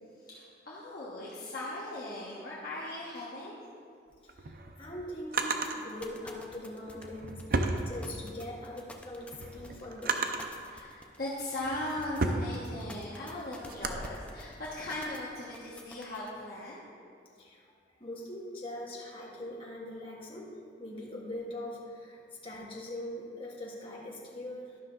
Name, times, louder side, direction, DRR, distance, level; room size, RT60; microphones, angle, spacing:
voice 1, 0.2-3.6 9.7-9.8 10.6-16.9, left 1 dB, 50° left, -8 dB, 1.2 m, -39 dB
Drawer open or close, 4.1-5.8 6.8-8.5 8.9-10.6 11.2-14.1, right 3 dB, 50° right, 0.6 m, -34 dB
voice 2, 4.2-10.3 17.4-17.6 18.0-20.5 20.8-24.7, left 1 dB, 30° left, -4 dB, 1.4 m, -42 dB
sound 1, 5.4-16.3, left 2 dB, 5° left, 0.5 m, -50 dB
12.0 x 5.8 x 3.9 m, 2.3 s
head